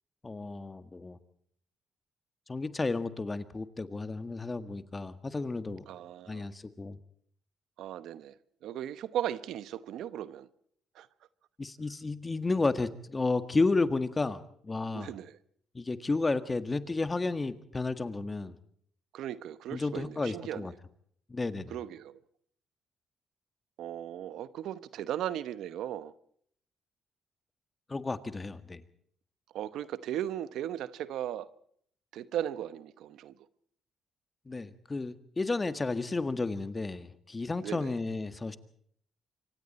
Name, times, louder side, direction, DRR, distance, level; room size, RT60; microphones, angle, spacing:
voice 1, 0.2-1.2 2.5-5.8 6.3-7.0 11.6-15.1 15.7-18.5 19.7-20.7 21.3-21.7 27.9-28.8 34.5-38.6, left 3 dB, 25° left, 1.7 m, -32 dB
voice 2, 5.9-6.5 7.8-10.5 10.9-11.1 14.9-15.4 19.1-20.8 21.7-22.2 23.8-26.1 29.5-31.5 32.1-33.4 37.6-37.9, right 11 dB, 80° right, 1.0 m, -37 dB
26.0 x 24.0 x 4.3 m
cardioid pair, 90°, 0 cm